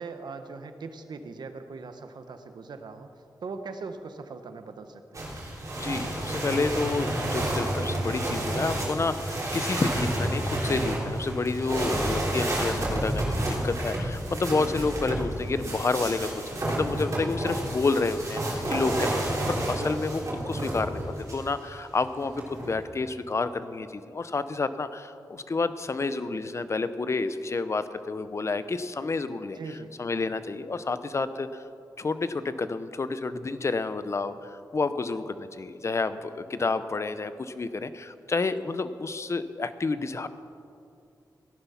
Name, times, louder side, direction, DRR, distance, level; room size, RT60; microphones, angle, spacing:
voice 1, 0.0-3.1 3.4-5.3 11.8-12.1 29.5-29.9, right 4 dB, 85° right, 8 dB, 1.0 m, -40 dB
sound 1, 5.1-21.5 22.2-22.9, right 1 dB, 45° right, 3.7 m, -30 dB
voice 2, 5.8-29.6 30.0-31.6 32.0-40.3, left 3 dB, 40° left, 12 dB, 0.7 m, -29 dB
17.0 x 11.0 x 5.7 m, 2.5 s
wide cardioid pair, 95°, 7 cm